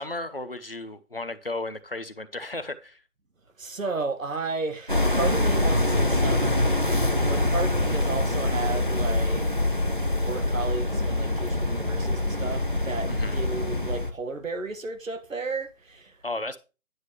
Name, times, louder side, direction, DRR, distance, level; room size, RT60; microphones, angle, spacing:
voice 1, 0.0-3.0 13.1-13.4 16.2-16.6, left 2 dB, 40° left, 0.6 m, -34 dB
voice 2, 3.6-6.8 7.3-9.5 10.2-16.2, right 3 dB, 60° right, 1.7 m, -33 dB
sound 1, 4.9-14.1, left 1 dB, 35° right, 0.5 m, -24 dB
9.6 x 7.8 x 3.1 m
figure-of-eight pair, 175°, 43 cm